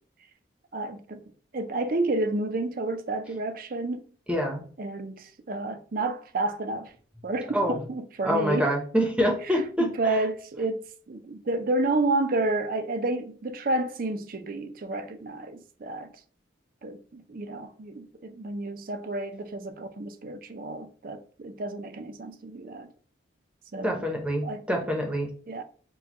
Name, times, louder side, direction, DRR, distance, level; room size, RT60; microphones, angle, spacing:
voice 1, 0.7-1.2 1.5-4.1 4.8-6.9 7.2-8.7 9.5-16.1 16.8-22.9 23.7-24.1 24.4-24.7 25.5-25.6, right 2 dB, 50° right, 0.5 m, -30 dB
voice 2, 4.3-4.6 7.5-7.8 8.2-10.2 23.8-25.3, equal, 5° right, 0.8 m, -26 dB
6.0 x 2.3 x 2.9 m
head